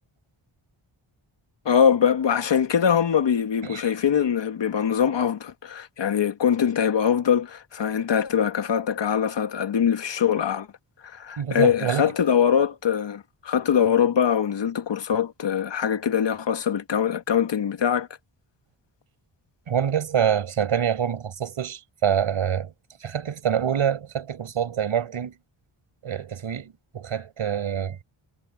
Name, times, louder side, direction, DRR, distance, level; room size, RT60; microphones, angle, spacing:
voice 1, 1.7-10.7 11.0-18.1, left 8 dB, 65° left, 1.6 m, -23 dB
voice 2, 11.4-12.1 19.7-22.7 23.0-25.4 26.0-28.0, right 8 dB, 90° right, 5.1 m, -26 dB
wide cardioid pair, 160°, 47 cm